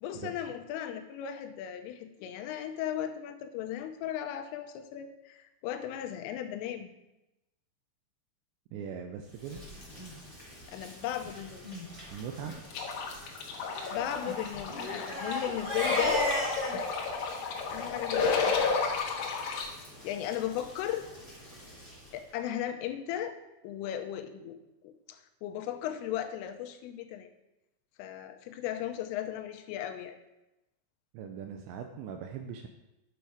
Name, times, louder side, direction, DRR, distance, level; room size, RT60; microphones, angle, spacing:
voice 1, 0.0-6.9 10.7-11.8 13.9-16.2 17.7-18.6 20.0-21.1 22.1-23.4 23.6-24.6 24.8-27.3 28.0-30.2, left 11 dB, 90° left, 7 dB, 3.4 m, -36 dB
voice 2, 8.7-9.6 12.1-12.5 31.1-32.7, right 7 dB, 85° right, 5 dB, 2.6 m, -40 dB
Rain, 9.2-22.4, equal, 5° right, 2.7 m, -50 dB
Crying sobbing, 9.9-10.1 10.8-10.9 11.2-11.3 11.6-11.9 12.3-12.5 13.7-16.8, equal, 30° right, 3.1 m, -35 dB
sound 1, 12.7-19.7, left 5 dB, 65° left, 3.0 m, -31 dB
11.0 x 7.1 x 4.8 m, 0.95 s
omnidirectional pair, 5.7 m